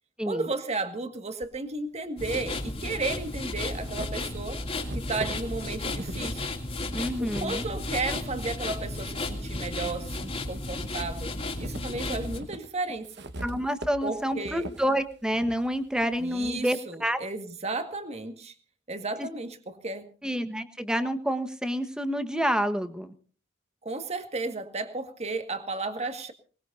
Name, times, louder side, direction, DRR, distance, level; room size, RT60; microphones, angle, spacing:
voice 1, 0.2-4.6 4.9-6.5 7.2-11.3 11.6-13.1 14.0-14.7 16.2-18.5 18.9-20.1 23.8-26.3, right 3 dB, 35° right, 8 dB, 1.8 m, -33 dB
sound 1, 1.4-1.5 2.6-2.7 3.2-8.3 8.8-10.0 10.4-16.6, right 1 dB, 60° right, 1.3 m, -42 dB
sound 2, 2.2-12.4, left 2 dB, 30° left, 2.8 m, -34 dB
voice 2, 6.9-7.7 13.4-17.2 19.2-19.3 20.2-23.1, equal, 5° right, 8 dB, 1.3 m, -28 dB
23.5 x 20.0 x 2.7 m, 0.40 s
head